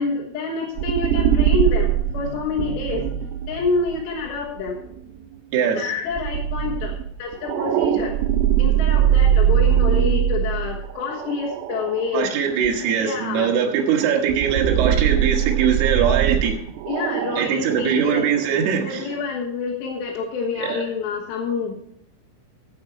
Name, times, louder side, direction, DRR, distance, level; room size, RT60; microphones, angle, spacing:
voice 1, 0.0-4.8 5.8-6.9 7.2-8.2 8.6-12.3 12.7-13.5 16.9-18.3 18.8-21.7, left 4 dB, 70° left, -2 dB, 3.4 m, -27 dB
sound 1, 0.8-5.0 6.2-12.2 12.6-12.7 14.3-17.7, right 10 dB, 85° right, 3.1 m, -21 dB
voice 2, 5.5-5.9 12.1-16.6 17.4-19.2 20.6-20.8, right 7 dB, 65° right, 0 dB, 3.0 m, -21 dB
15.0 x 8.0 x 4.4 m, 0.70 s
omnidirectional pair, 5.5 m